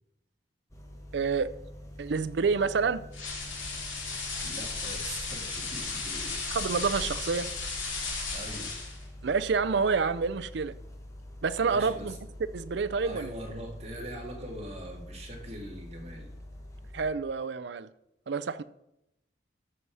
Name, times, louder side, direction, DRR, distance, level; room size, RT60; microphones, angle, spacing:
sound 1, 0.7-17.1, left 1 dB, 15° left, 1.2 m, -46 dB
voice 1, 1.1-1.5 2.0-3.0 6.5-7.5 9.2-10.7 11.4-12.2 12.5-13.3 16.9-17.9 18.3-18.6, right 5 dB, 60° right, 0.4 m, -28 dB
sound 2, 3.1-9.0, left 4 dB, 90° left, 2.4 m, -35 dB
voice 2, 4.4-6.4 8.3-8.7 11.6-12.2 13.0-16.3, right 1 dB, 35° right, 2.2 m, -42 dB
13.5 x 5.5 x 4.8 m
head